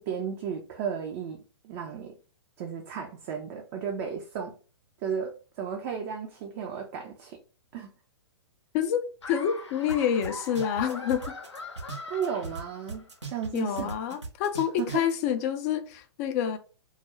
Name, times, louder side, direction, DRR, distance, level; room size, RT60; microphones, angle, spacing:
voice 1, 0.0-2.2 2.6-4.5 5.0-7.4 7.7-7.9 12.1-13.9 14.8-15.0, right 7 dB, 35° right, 0.4 m, -34 dB
voice 2, 8.7-11.2 13.5-16.6, left 9 dB, 35° left, 0.3 m, -28 dB
Laughter, 9.2-13.2, left 3 dB, 85° left, 0.6 m, -42 dB
sound 1, 9.9-10.0 10.2-12.6 12.9-15.1, right 4 dB, 90° right, 0.7 m, -38 dB
2.3 x 2.1 x 3.0 m
figure-of-eight pair, 115°, 14 cm